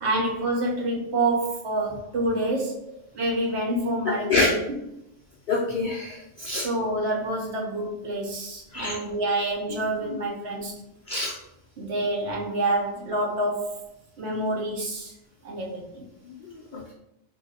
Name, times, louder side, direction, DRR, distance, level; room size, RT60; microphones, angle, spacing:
voice 1, 0.0-2.8 3.1-4.6 6.5-10.8 11.8-13.8 14.2-15.1 15.4-16.0, right 2 dB, 60° right, -2 dB, 1.0 m, -27 dB
voice 2, 4.1-4.5 5.5-6.7 8.7-9.0 11.1-11.3 16.4-16.9, left 3 dB, 60° left, -4 dB, 0.5 m, -26 dB
3.9 x 2.6 x 2.7 m, 0.84 s
omnidirectional pair, 1.3 m